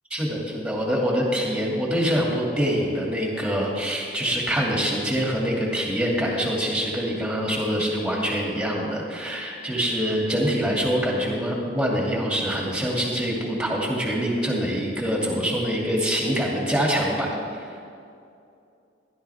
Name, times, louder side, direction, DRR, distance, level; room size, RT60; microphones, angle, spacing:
voice 1, 0.1-17.7, equal, 5° right, -3 dB, 2.4 m, -25 dB
16.0 x 12.0 x 3.5 m, 2.5 s
head